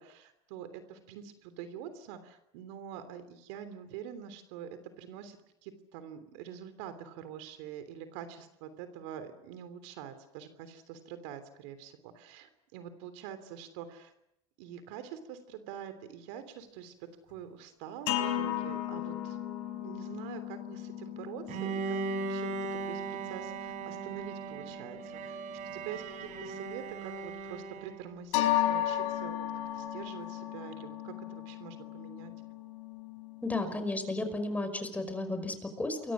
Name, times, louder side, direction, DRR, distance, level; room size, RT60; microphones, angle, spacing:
voice 1, 0.0-4.7 5.0-14.1 14.6-16.9 17.3-19.4 19.8-22.6 22.9-25.0 25.2-25.4 25.7-29.4 29.7-32.3, right 9 dB, 70° right, 10 dB, 3.3 m, -45 dB
sound 1, 18.1-26.7 28.3-34.2, left 12 dB, 70° left, 4.9 m, -36 dB
Bowed string instrument, 21.5-28.2, right 4 dB, 55° right, 4.2 m, -38 dB
voice 2, 33.4-36.1, left 2 dB, 10° left, 8 dB, 5.3 m, -33 dB
28.5 x 23.5 x 6.3 m, 0.80 s
hypercardioid pair, 95°, 16 cm